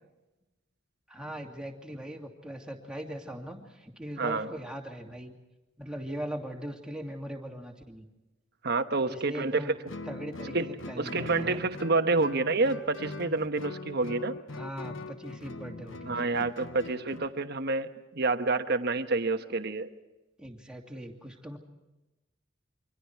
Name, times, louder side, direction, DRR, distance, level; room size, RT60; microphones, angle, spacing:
voice 1, 1.1-5.3 5.8-8.0 9.1-9.7 10.1-11.6 14.5-16.4 20.4-21.6, equal, 5° right, 0 dB, 2.6 m, -40 dB
voice 2, 4.2-4.5 8.6-9.9 10.5-10.7 11.0-14.3 16.1-19.9, right 3 dB, 55° right, 8 dB, 1.3 m, -28 dB
Guitar, 9.9-17.3, left 2 dB, 75° left, 1.1 m, -41 dB
29.0 x 24.5 x 4.7 m, 1.0 s
head